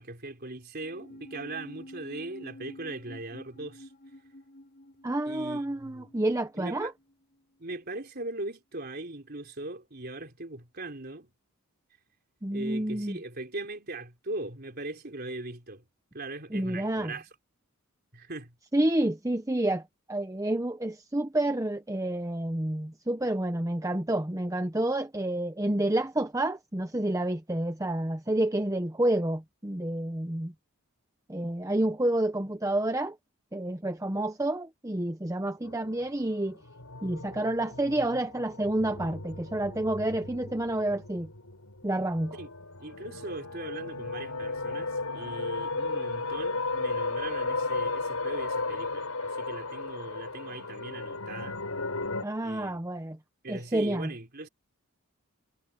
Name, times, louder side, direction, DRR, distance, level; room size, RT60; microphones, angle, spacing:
voice 1, 0.0-3.9 5.3-6.1 6.6-6.9 7.6-11.3 12.5-15.8 16.1-17.3 18.1-18.5 42.4-42.5 42.8-51.6 52.4-52.8 53.4-54.5, right 2 dB, 45° right, 4.0 m, -40 dB
sound 1, 0.8-7.4 7.6-7.7, left 1 dB, 45° left, 5.7 m, -49 dB
voice 2, 5.0-6.9 12.4-13.2 16.5-17.1 18.7-19.8 20.1-30.5 31.3-33.2 33.5-36.6 37.0-41.3 41.8-42.4 52.2-53.2 53.5-54.1, right 1 dB, 15° right, 0.8 m, -29 dB
sound 2, 35.6-52.2, left 3 dB, 80° left, 5.7 m, -35 dB
head